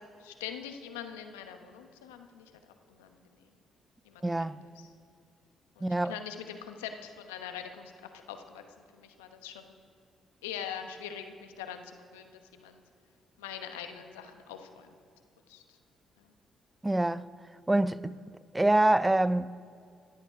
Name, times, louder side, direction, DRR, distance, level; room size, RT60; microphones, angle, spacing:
voice 1, 0.2-2.5 2.9-3.1 4.0-4.5 4.8-4.9 5.8-7.9 8.3-8.6 8.9-9.7 10.4-12.8 13.4-14.9 15.5-15.6 16.2-16.3, left 8 dB, 85° left, 1.0 m, -43 dB
voice 2, 4.2-4.6 5.8-6.2 16.8-17.3 17.7-18.2 18.5-19.5, right 1 dB, 15° right, 0.5 m, -25 dB
16.0 x 11.5 x 4.9 m
hypercardioid pair, 45°, 0 cm